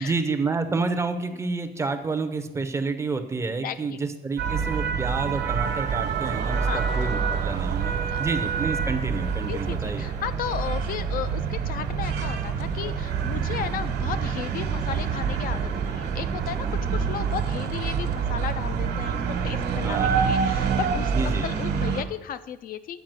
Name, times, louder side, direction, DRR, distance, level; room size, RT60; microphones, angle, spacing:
voice 1, 0.0-10.1 19.8-20.3 21.1-21.5, right 4 dB, 15° right, 8 dB, 0.5 m, -29 dB
voice 2, 3.6-4.0 6.6-6.9 7.9-8.3 9.5-23.0, left 9 dB, 55° left, 12 dB, 0.4 m, -34 dB
sound 1, 4.4-22.0, right 6 dB, 65° right, 1.2 m, -27 dB
sound 2, 5.2-10.0, right 9 dB, 85° right, 0.9 m, -39 dB
9.2 x 4.7 x 7.5 m, 1.1 s
cardioid pair, 180°, 18 cm